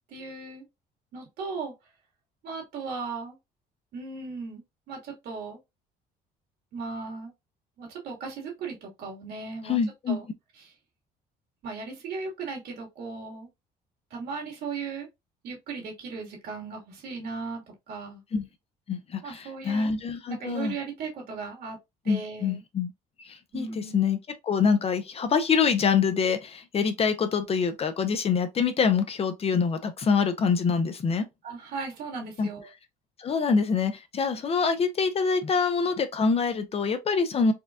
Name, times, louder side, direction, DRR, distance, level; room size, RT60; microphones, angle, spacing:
voice 1, 0.1-0.6 1.1-1.7 2.4-3.4 3.9-5.6 6.7-7.3 7.8-9.8 10.1-10.3 10.6-10.7 11.6-13.5 14.1-15.1 15.4-17.6 17.9-18.2 19.2-19.9 20.3-21.8 22.0-22.6 23.5-24.0 31.4-32.7, right 4 dB, 70° right, 1.9 m, -37 dB
voice 2, 9.6-10.2 18.3-18.5 18.9-20.8 22.1-22.9 23.2-24.2 24.4-31.2 32.4-32.5 33.2-37.5, left 5 dB, 35° left, 0.6 m, -25 dB
4.3 x 2.3 x 2.4 m
cardioid pair, 110°, 17 cm